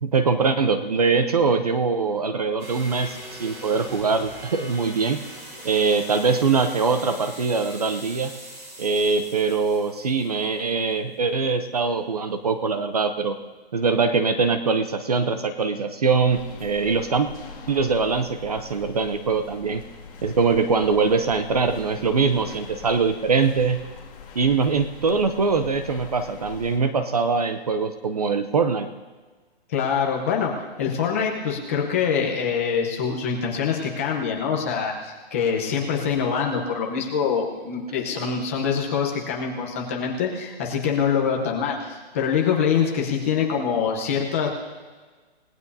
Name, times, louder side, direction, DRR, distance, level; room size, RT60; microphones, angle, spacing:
voice 1, 0.0-5.2 5.6-8.3 8.8-13.4 13.7-17.3 17.7-19.8 20.2-23.8 24.3-28.9, right 4 dB, 40° right, 10 dB, 0.7 m, -22 dB
sound 1, 2.6-10.9, right 1 dB, 15° right, 1.0 m, -41 dB
sound 2, 16.3-26.8, left 6 dB, 35° left, 2.3 m, -43 dB
voice 2, 29.7-44.5, left 6 dB, 15° left, -1 dB, 0.9 m, -24 dB
29.0 x 18.0 x 2.8 m, 1.4 s
hypercardioid pair, 180°, 31 cm